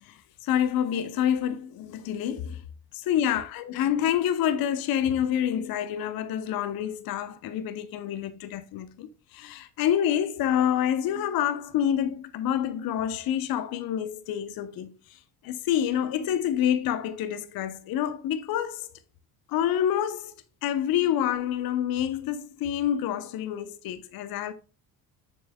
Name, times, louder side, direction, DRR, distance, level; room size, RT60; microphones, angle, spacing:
voice 1, 0.0-2.6 2.9-19.0 19.5-20.3 20.6-24.5, left 10 dB, 45° left, 0.7 m, -27 dB
7.2 x 6.0 x 2.2 m
hypercardioid pair, 55°, 50 cm